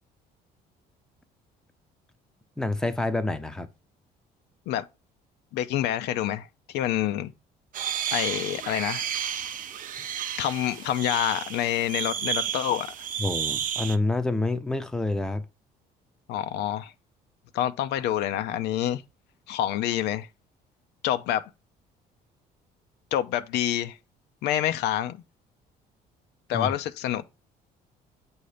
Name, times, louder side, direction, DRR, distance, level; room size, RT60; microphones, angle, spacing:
voice 1, 2.6-3.7 13.2-15.4 26.5-26.7, left 2 dB, 5° left, 0.6 m, -27 dB
voice 2, 5.5-6.5 6.7-7.3 8.1-9.1 10.4-12.9 16.3-16.9 17.5-19.0 19.5-20.3 21.0-21.4 23.1-24.0 24.4-25.2 26.5-27.2, left 11 dB, 80° left, 0.5 m, -27 dB
sound 1, 7.7-14.0, right 9 dB, 50° right, 0.5 m, -32 dB
7.7 x 2.8 x 4.9 m
cardioid pair, 110°, 17 cm